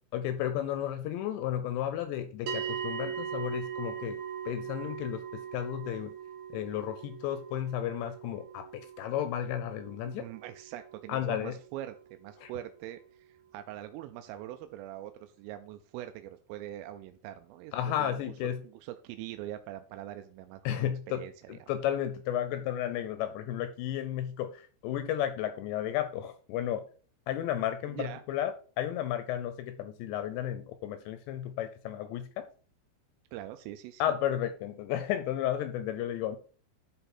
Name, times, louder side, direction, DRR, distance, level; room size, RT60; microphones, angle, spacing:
voice 1, 0.1-4.2 4.5-6.1 6.5-10.3 11.1-11.5 12.4-12.5 17.7-18.6 20.7-21.2 21.5-26.8 27.3-28.5 28.8-32.4 34.0-36.4, left 11 dB, 80° left, 9 dB, 2.6 m, -33 dB
sound 1, 2.5-13.0, right 8 dB, 65° right, 1.9 m, -41 dB
voice 2, 10.0-18.3 18.6-21.6 27.9-28.2 33.3-34.0, right 13 dB, 85° right, 8 dB, 3.2 m, -43 dB
12.5 x 4.4 x 4.3 m, 0.39 s
omnidirectional pair, 5.8 m